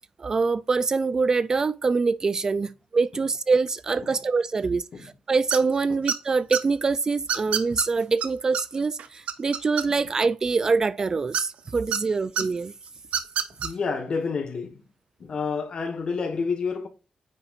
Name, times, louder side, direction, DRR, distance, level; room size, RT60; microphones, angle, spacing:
voice 1, 0.2-12.7, right 4 dB, 30° right, 0.3 m, -24 dB
sound 1, 5.5-5.8 6.1-6.6 7.3-7.9 8.2-8.3 8.5-8.6 9.0-10.2 11.3-12.0 12.4-12.5 13.0-13.7, right 8 dB, 80° right, 0.8 m, -26 dB
voice 2, 13.6-14.8 15.2-16.9, left 5 dB, 45° left, 1.4 m, -29 dB
9.4 x 5.8 x 2.5 m
wide cardioid pair, 175°, 2 cm